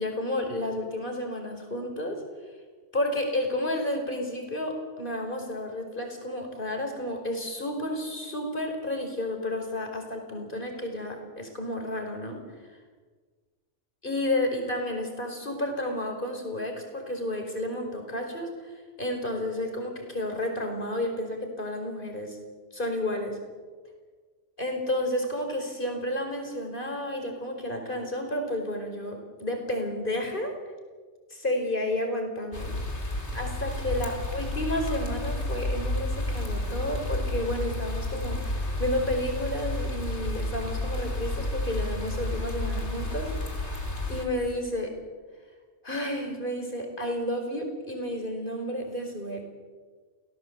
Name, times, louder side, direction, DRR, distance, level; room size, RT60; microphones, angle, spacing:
voice 1, 0.0-2.2 2.9-12.4 14.0-22.4 22.7-23.4 24.6-30.5 31.3-32.7 33.3-43.5 44.1-44.9 45.8-49.4, left 1 dB, 45° left, 3 dB, 5.1 m, -31 dB
sound 1, 32.5-44.2, left 2 dB, 70° left, 3.4 m, -31 dB
28.5 x 17.5 x 8.0 m, 1.5 s
omnidirectional pair, 1.2 m